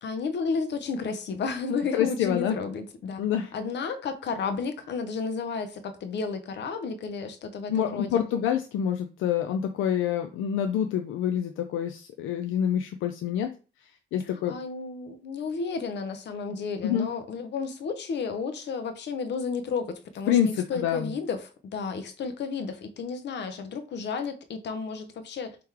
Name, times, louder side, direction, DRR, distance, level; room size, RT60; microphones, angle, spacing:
voice 1, 0.0-3.2 3.5-8.1 14.2-25.6, left 5 dB, 60° left, 0.8 m, -32 dB
voice 2, 1.9-2.6 3.2-3.5 7.7-13.5 14.1-14.6 16.8-17.1 20.3-21.1, left 9 dB, 85° left, 0.5 m, -27 dB
3.6 x 3.0 x 4.6 m
cardioid pair, 90°, 20 cm